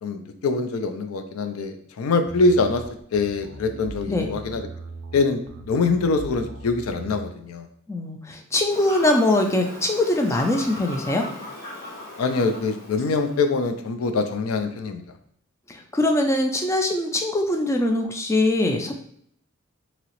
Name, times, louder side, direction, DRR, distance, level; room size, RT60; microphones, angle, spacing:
voice 1, 0.0-2.8 3.1-4.7 5.1-7.7 12.2-15.0, left 3 dB, 80° left, 7 dB, 0.4 m, -24 dB
sound 1, 2.3-7.3, right 2 dB, 60° right, 0.4 m, -39 dB
voice 2, 7.9-11.3 15.7-18.9, left 1 dB, 15° left, 3 dB, 0.3 m, -22 dB
Fowl / Bird vocalization bird call bird song, 8.7-13.7, left 1 dB, 45° left, 1.3 m, -38 dB
2.9 x 2.8 x 2.9 m, 0.67 s
head